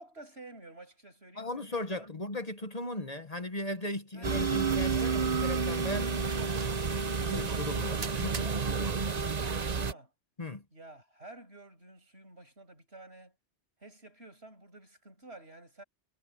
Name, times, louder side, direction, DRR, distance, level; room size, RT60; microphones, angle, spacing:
voice 1, 0.0-2.1 4.1-4.5 8.0-10.1 10.7-13.3 13.8-15.8, right 2 dB, 70° right, 7.7 m, -51 dB
voice 2, 1.4-6.2 7.2-8.4 10.4-10.6, left 1 dB, 35° left, 1.4 m, -37 dB
sound 1, 4.2-9.9, right 5 dB, 40° right, 0.9 m, -30 dB
omnidirectional pair, 1.1 m